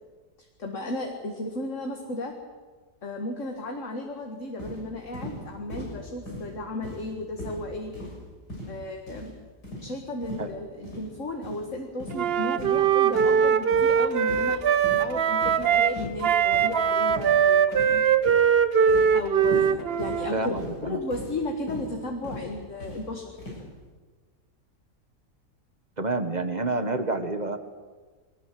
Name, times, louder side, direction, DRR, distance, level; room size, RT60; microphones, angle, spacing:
voice 1, 0.6-2.3 3.0-7.9 8.7-9.4 9.8-18.0 19.1-20.6 20.8-23.3, left 2 dB, 50° left, 3 dB, 2.2 m, -34 dB
sound 1, 4.6-4.8 5.1-5.4 5.7-5.9 6.3-6.5 6.8-7.1 7.4-7.6 7.9-8.2 8.5-8.7 9.1-9.3 9.6-9.9 10.2-10.4 10.8-11.0 11.4-11.6 12.0-12.2 12.6-12.8 13.1-13.4 13.7-13.9 14.3-14.6 14.8-15.0 15.4-15.7 16.0-16.2 16.5-16.7 17.1-17.4 17.7-18.0 18.3-18.5 18.9-19.1 19.4-19.7 20.0-20.2 20.6-20.8 21.1-21.3 21.7-21.9 22.2-22.4 22.8-23.0 23.4-23.6, left 1 dB, 75° left, 7.6 m, -38 dB
Wind instrument woodwind instrument, 12.1-16.0 16.2-20.3, right 7 dB, 50° right, 0.8 m, -21 dB
voice 2, 20.3-21.0 26.0-27.6, right 3 dB, 30° right, 9 dB, 1.3 m, -28 dB
22.0 x 19.0 x 7.7 m, 1.4 s
omnidirectional pair, 1.8 m